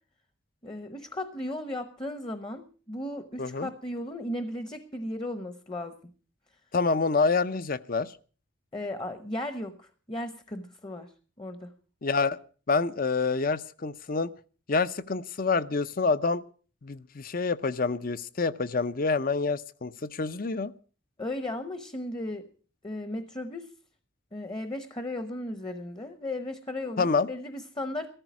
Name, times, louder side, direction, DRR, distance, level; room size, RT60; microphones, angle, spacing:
voice 1, 0.6-6.1 8.7-11.1 11.4-11.7 21.2-22.5 22.8-23.7 24.3-28.1, left 1 dB, 20° left, 10 dB, 0.9 m, -36 dB
voice 2, 3.4-3.7 6.7-8.1 12.0-12.4 12.7-14.3 14.7-16.4 16.8-20.7 27.0-27.3, left 4 dB, 45° left, 16 dB, 0.6 m, -27 dB
15.0 x 13.5 x 6.1 m, 0.40 s
head